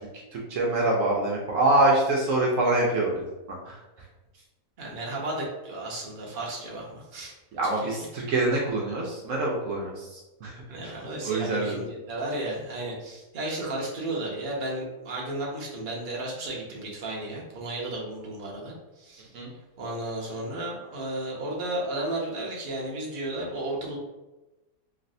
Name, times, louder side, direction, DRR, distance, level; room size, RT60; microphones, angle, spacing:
voice 1, 0.3-3.8 7.5-10.5 11.2-11.8 19.3-19.5, right 2 dB, 70° right, -2 dB, 0.9 m, -25 dB
voice 2, 4.8-7.3 7.7-7.8 10.7-19.3 19.8-24.0, right 1 dB, 45° right, -3 dB, 0.7 m, -33 dB
3.2 x 2.6 x 2.6 m, 1.1 s
omnidirectional pair, 1.5 m